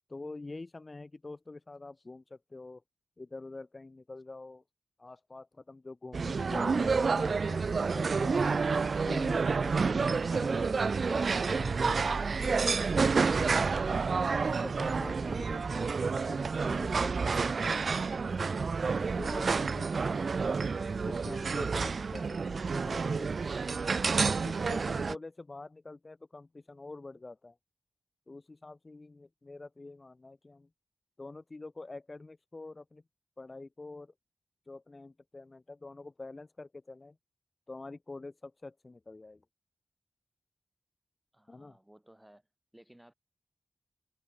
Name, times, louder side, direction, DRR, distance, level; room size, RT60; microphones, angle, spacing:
voice 1, 0.1-2.8 3.2-4.6 5.0-8.7 9.0-14.3 14.6-20.3 21.0-23.3 24.2-27.6 28.3-30.7 31.2-33.0 33.4-34.1 34.7-37.2 37.7-39.4 41.5-41.8, left 3 dB, 40° left, 0.7 m, -46 dB
sound 1, 6.1-25.1, right 4 dB, 65° right, 0.4 m, -29 dB
voice 2, 41.3-42.4 42.7-43.1, right 1 dB, 10° right, 7.0 m, -58 dB
cardioid pair, 40°, 0 cm